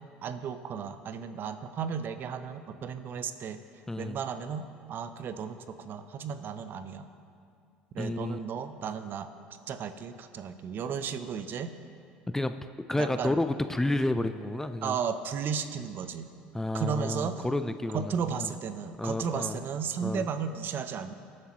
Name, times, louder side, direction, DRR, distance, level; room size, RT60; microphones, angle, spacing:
voice 1, 0.2-3.6 4.0-7.1 7.9-9.3 9.7-11.7 13.0-13.4 14.8-16.3 16.7-17.4 17.9-21.1, right 7 dB, 50° right, 10 dB, 0.7 m, -34 dB
voice 2, 3.9-4.2 8.0-8.4 12.3-12.6 12.9-15.0 16.5-18.5 19.0-19.6 20.0-20.3, left 2 dB, 10° left, 10 dB, 0.5 m, -30 dB
19.5 x 7.5 x 3.0 m, 2.4 s
hypercardioid pair, 70°, 4 cm